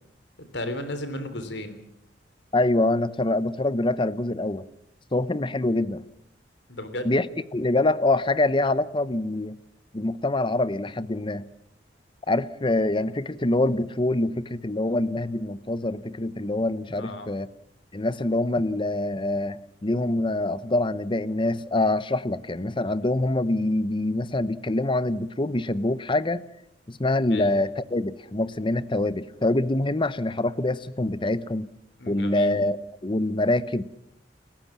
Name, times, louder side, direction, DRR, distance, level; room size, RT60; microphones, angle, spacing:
voice 1, 0.5-1.8 6.7-7.1 16.9-17.3 27.3-27.5 32.0-32.5, left 1 dB, 85° left, 10 dB, 3.4 m, -34 dB
voice 2, 2.5-4.6 5.1-6.0 7.0-7.2 7.5-9.6 9.9-11.5 12.3-17.5 17.9-26.4 26.9-31.7 32.1-32.8 33.0-33.8, left 2 dB, 30° left, 16 dB, 0.9 m, -25 dB
28.5 x 15.0 x 7.3 m, 0.75 s
head